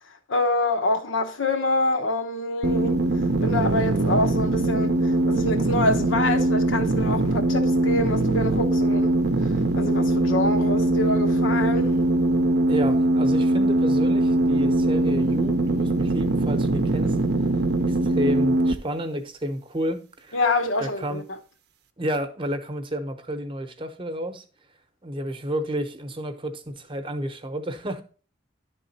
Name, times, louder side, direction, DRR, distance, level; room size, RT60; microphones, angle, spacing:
voice 1, 0.3-9.1 9.7-12.0 20.3-21.4, left 2 dB, 75° left, 1.1 m, -26 dB
sound 1, 2.6-18.7, right 1 dB, 55° right, 0.6 m, -22 dB
voice 2, 12.7-17.2 17.9-20.4 20.8-21.2 22.0-24.4 25.0-28.0, equal, 25° right, 0.9 m, -31 dB
11.0 x 3.7 x 4.2 m
head